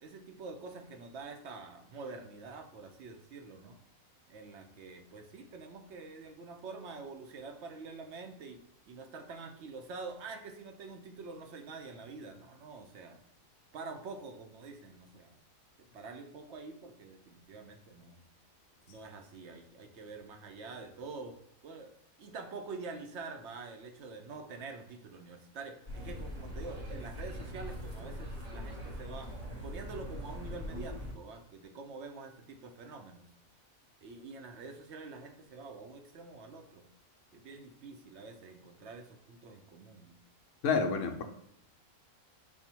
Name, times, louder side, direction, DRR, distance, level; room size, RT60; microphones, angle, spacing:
voice 1, 0.0-3.8 4.3-8.6 8.9-13.2 13.7-15.4 15.9-18.2 18.9-21.4 21.6-21.9 22.2-29.4 29.6-33.3 34.0-36.9 37.3-40.2, right 4 dB, 65° right, 5 dB, 0.8 m, -46 dB
sound 1, 25.9-31.1, equal, 35° right, 0.9 m, -42 dB
voice 2, 40.6-41.2, left 5 dB, 70° left, 5 dB, 0.9 m, -29 dB
5.4 x 2.2 x 4.4 m, 0.76 s
omnidirectional pair, 1.4 m